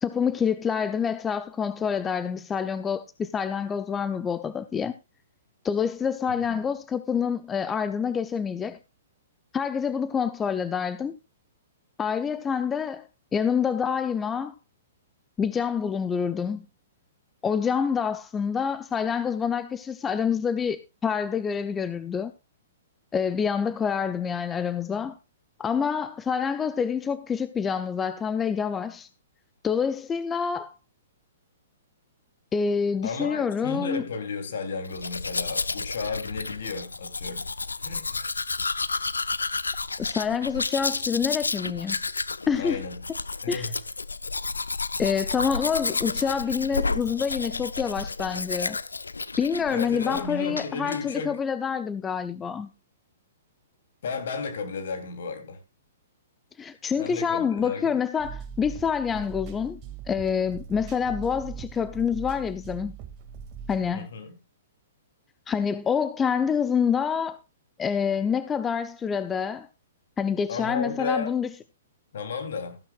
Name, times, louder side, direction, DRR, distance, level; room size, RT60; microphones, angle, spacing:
voice 1, 0.0-4.9 5.6-8.8 9.5-11.2 12.0-13.1 13.3-14.5 15.4-16.6 17.4-22.3 23.1-25.2 25.6-29.1 29.6-30.7 32.5-34.1 40.0-42.0 42.5-42.8 43.5-43.7 45.0-48.8 49.4-52.7 56.6-59.8 60.1-62.9 63.7-64.1 65.5-67.4 67.8-69.7 70.2-71.5, left 6 dB, 15° left, 0.6 m, -27 dB
voice 2, 33.0-37.5 37.8-38.3 42.6-43.1 43.4-43.7 49.7-51.4 54.0-55.6 57.0-57.9 63.9-64.3 70.5-71.3 72.1-72.8, left 4 dB, 65° left, 3.1 m, -33 dB
Domestic sounds home sounds, 34.8-50.3 50.6-51.0, left 3 dB, 90° left, 0.5 m, -31 dB
sound 1, 58.2-63.9, right 6 dB, 35° right, 2.1 m, -40 dB
14.5 x 12.0 x 2.4 m
hypercardioid pair, 120°, 0 cm